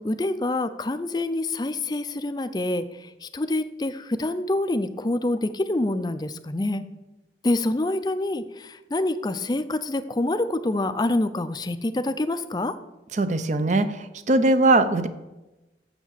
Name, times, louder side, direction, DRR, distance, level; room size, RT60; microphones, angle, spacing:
voice 1, 0.0-6.8 7.4-12.8, left 2 dB, 25° left, 12 dB, 0.4 m, -26 dB
voice 2, 13.1-15.1, right 2 dB, 40° right, 11 dB, 0.6 m, -21 dB
7.1 x 6.8 x 7.3 m, 1.0 s
head